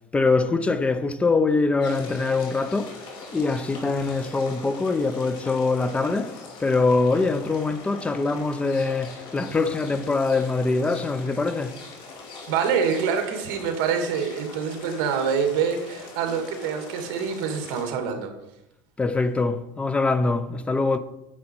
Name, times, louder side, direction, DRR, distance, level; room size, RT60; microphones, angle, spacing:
voice 1, 0.1-3.0 3.3-11.8 19.0-21.0, left 3 dB, 10° left, 0.5 m, -23 dB
sound 1, 1.8-17.8, left 3 dB, 45° left, 2.4 m, -42 dB
voice 2, 12.5-18.3, right 6 dB, 65° right, 2.0 m, -26 dB
9.4 x 7.6 x 4.4 m
cardioid pair, 150°, 11 cm